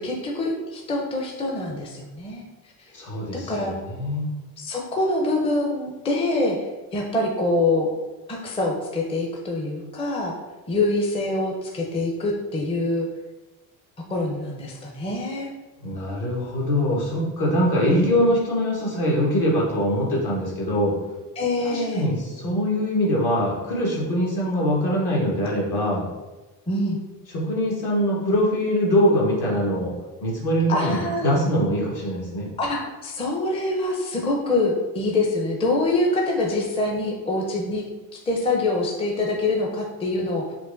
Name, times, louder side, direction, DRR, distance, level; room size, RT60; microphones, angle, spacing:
voice 1, 0.0-2.4 3.5-3.7 4.6-6.6 6.9-7.9 8.3-10.3 10.7-13.1 14.1-15.5 17.8-18.3 21.4-22.1 26.7-27.0 30.7-31.3 32.6-37.8 38.3-40.5, left 2 dB, 15° left, -1 dB, 0.5 m, -25 dB
voice 2, 2.9-4.3 15.8-21.0 21.6-26.0 27.3-29.9 30.2-32.5, equal, 60° left, -3 dB, 1.4 m, -23 dB
4.4 x 2.5 x 2.5 m, 1.2 s
supercardioid pair, 75°, 44 cm